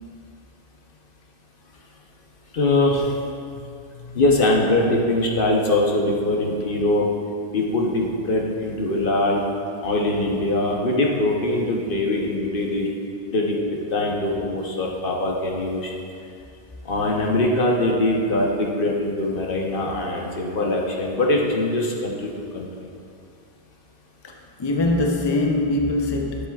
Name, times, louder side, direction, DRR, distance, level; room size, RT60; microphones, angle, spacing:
voice 1, 2.5-3.1 4.1-7.1 7.5-9.4 9.8-12.9 13.3-13.6 13.9-15.9 16.8-22.7, left 2 dB, 60° left, -1 dB, 1.1 m, -22 dB
voice 2, 24.2-26.5, left 2 dB, 30° left, 1 dB, 0.5 m, -23 dB
10.5 x 7.7 x 2.4 m, 2.5 s
omnidirectional pair, 1.1 m